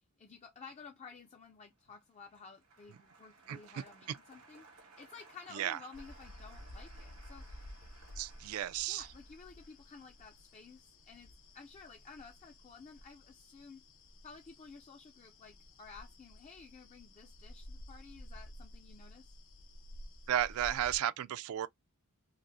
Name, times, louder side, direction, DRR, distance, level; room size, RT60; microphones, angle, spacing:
voice 1, 0.2-4.7 5.0-7.7 8.9-13.8 14.2-19.4, left 4 dB, 30° left, 0.4 m, -53 dB
Applause, 1.7-12.1 12.4-13.0, right 3 dB, 90° right, 1.8 m, -61 dB
voice 2, 3.5-3.8 5.5-5.8 8.2-9.1 20.3-21.7, right 11 dB, 70° right, 0.3 m, -34 dB
sound 1, 5.9-21.0, left 1 dB, 60° left, 0.7 m, -53 dB
5.1 x 2.0 x 2.6 m
head